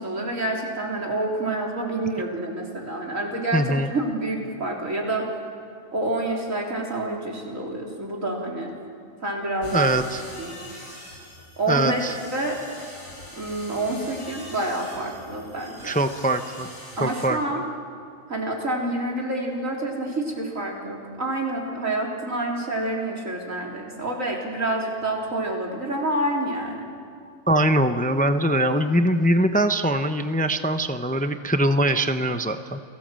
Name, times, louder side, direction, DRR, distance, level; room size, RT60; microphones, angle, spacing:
voice 1, 0.0-5.3 5.9-8.7 9.2-10.0 10.4-10.5 11.6-12.6 13.4-16.0 17.0-17.6 18.3-26.8, right 2 dB, 85° right, -1 dB, 4.2 m, -28 dB
voice 2, 3.5-3.9 9.7-10.2 11.7-12.1 15.8-16.7 17.0-17.4 27.5-32.8, right 1 dB, 10° left, 8 dB, 0.6 m, -22 dB
sound 1, 9.6-17.3, left 1 dB, 90° left, 5.8 m, -42 dB
29.5 x 18.5 x 7.6 m, 2.4 s
omnidirectional pair, 1.3 m